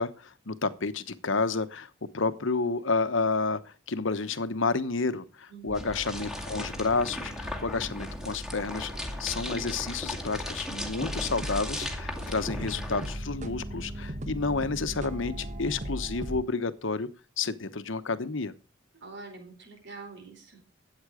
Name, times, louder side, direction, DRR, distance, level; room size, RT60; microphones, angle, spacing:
voice 1, 0.0-8.9 9.2-17.1 17.4-18.5, left 4 dB, 65° left, 12 dB, 1.1 m, -30 dB
voice 2, 5.5-5.8 18.9-20.6, right 3 dB, 60° right, 4 dB, 4.5 m, -45 dB
sound 1, 5.7-13.2, left 1 dB, ahead, 2.3 m, -38 dB
sound 2, 5.7-16.4, equal, 35° right, 1.2 m, -38 dB
13.5 x 8.7 x 5.1 m, 0.33 s
head